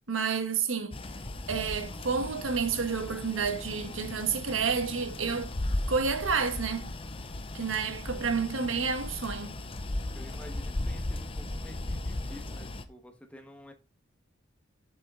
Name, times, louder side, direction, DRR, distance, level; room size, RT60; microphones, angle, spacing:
voice 1, 0.1-1.0 1.5-5.5 5.9-6.9 7.5-9.6, right 5 dB, 75° right, 1.3 m, -30 dB
sound 1, 0.9-12.8, left 1 dB, 25° left, 0.7 m, -36 dB
voice 2, 10.1-13.7, left 1 dB, 5° left, 1.4 m, -50 dB
8.1 x 7.0 x 3.8 m
head